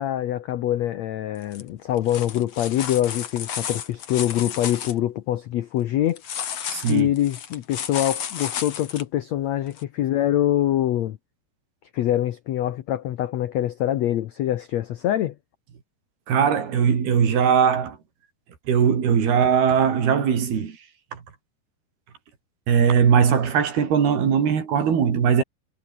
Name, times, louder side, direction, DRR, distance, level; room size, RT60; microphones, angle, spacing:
voice 1, 0.0-6.2 6.9-11.2 11.9-15.3, left 12 dB, 90° left, 1.5 m, -24 dB
sound 1, 1.4-1.6 2.0-4.9 6.2-9.0 9.8-9.9, left 8 dB, 45° left, 2.6 m, -32 dB
voice 2, 6.7-7.1 16.3-18.0 18.7-20.8 21.1-21.2 22.7-25.4, right 7 dB, 75° right, 5.8 m, -20 dB
omnidirectional pair, 4.5 m